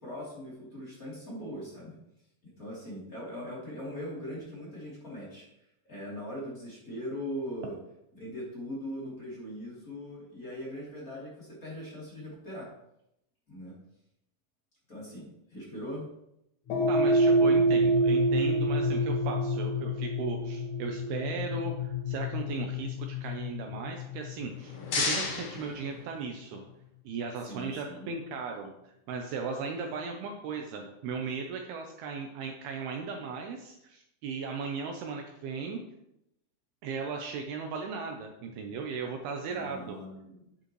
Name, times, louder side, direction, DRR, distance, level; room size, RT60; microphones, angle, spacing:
voice 1, 0.0-2.0 2.4-5.5 5.9-7.7 8.1-12.7 13.5-13.7 14.9-16.1 27.5-28.1 39.5-40.4, equal, 20° left, -7 dB, 3.2 m, -40 dB
sound 1, 16.7-25.1, right 1 dB, 90° left, 4.9 m, -27 dB
voice 2, 16.9-26.6 27.0-35.8 36.8-40.0, right 5 dB, 75° right, 2 dB, 2.5 m, -37 dB
sound 2, 24.4-26.6, left 3 dB, 55° left, 1.7 m, -34 dB
10.5 x 9.1 x 3.2 m, 0.82 s
omnidirectional pair, 5.0 m